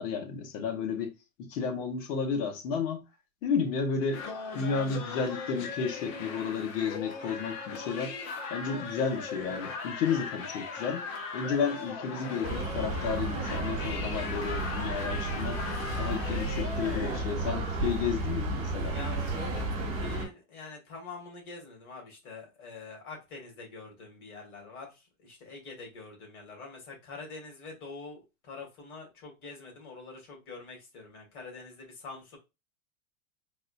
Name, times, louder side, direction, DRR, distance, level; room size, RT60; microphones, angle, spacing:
voice 1, 0.0-3.1 3.4-4.2 4.5-8.1 8.5-11.1 11.3-15.6 16.0-18.9, left 6 dB, 65° left, 1.3 m, -32 dB
sound 1, 4.1-17.2, left 4 dB, 40° left, 0.8 m, -39 dB
sound 2, 12.4-20.3, right 2 dB, 30° right, 1.4 m, -32 dB
voice 2, 18.9-32.4, left 3 dB, 90° left, 2.2 m, -45 dB
4.1 x 2.4 x 2.6 m
supercardioid pair, 140°, 43 cm